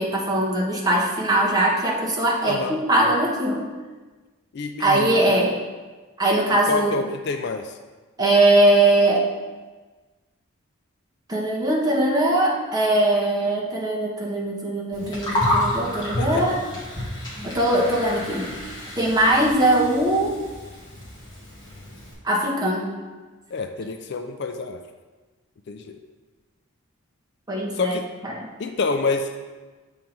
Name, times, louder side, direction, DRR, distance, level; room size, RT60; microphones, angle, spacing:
voice 1, 0.0-3.6 4.8-5.6 6.2-7.0 8.2-9.3 11.3-16.6 17.4-18.5 19.0-20.4 22.2-22.9 27.5-28.0 28.2-28.5, right 1 dB, 15° right, -4 dB, 1.0 m, -21 dB
voice 2, 2.4-2.8 4.5-5.2 6.7-7.7 16.2-16.6 23.5-24.8 25.7-26.0 27.8-28.0 28.6-29.4, left 3 dB, 50° left, 6 dB, 0.4 m, -27 dB
Gurgling, 14.9-22.1, left 1 dB, 20° left, 1.6 m, -29 dB
7.2 x 3.9 x 4.5 m, 1.3 s
head